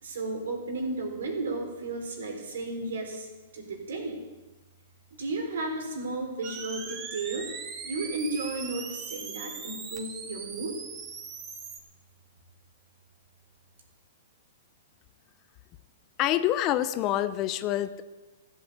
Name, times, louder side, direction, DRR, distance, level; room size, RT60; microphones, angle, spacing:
voice 1, 0.0-3.3 3.5-4.2 5.2-7.5 7.8-10.8, right 2 dB, 75° right, 3 dB, 4.2 m, -33 dB
sound 1, 6.4-11.8, right 5 dB, 30° right, 2.4 m, -40 dB
voice 2, 16.2-18.0, left 13 dB, 35° left, 13 dB, 0.8 m, -26 dB
15.0 x 8.6 x 8.2 m, 1.2 s
hypercardioid pair, 130°, 0 cm